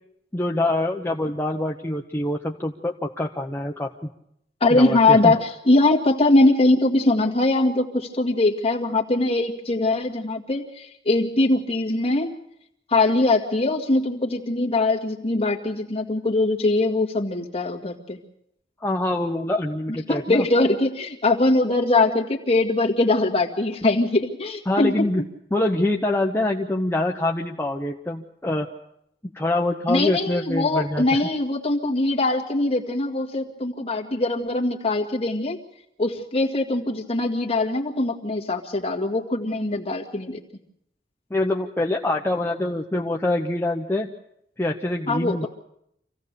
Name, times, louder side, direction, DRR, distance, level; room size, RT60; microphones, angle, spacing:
voice 1, 0.3-3.9 4.7-5.3 18.8-20.4 24.7-25.2 25.5-28.7 29.3-31.0 41.3-44.1 44.6-45.5, left 1 dB, 15° left, 0 dB, 0.9 m, -25 dB
voice 2, 4.6-12.3 12.9-18.2 20.1-25.0 29.9-35.6 36.0-40.4 45.1-45.5, left 2 dB, 35° left, 1 dB, 2.0 m, -22 dB
26.0 x 16.0 x 6.8 m, 0.77 s
head